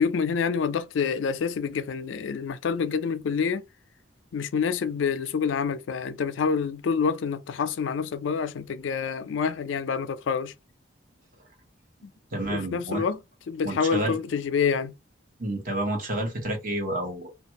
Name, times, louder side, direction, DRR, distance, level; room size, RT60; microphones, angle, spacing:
voice 1, 0.0-3.6 4.3-10.5 12.5-13.2 13.5-14.9, left 6 dB, 75° left, 0.4 m, -27 dB
voice 2, 12.3-13.0 13.6-14.2 15.4-17.3, right 1 dB, 50° right, 1.2 m, -29 dB
2.6 x 2.3 x 2.8 m
head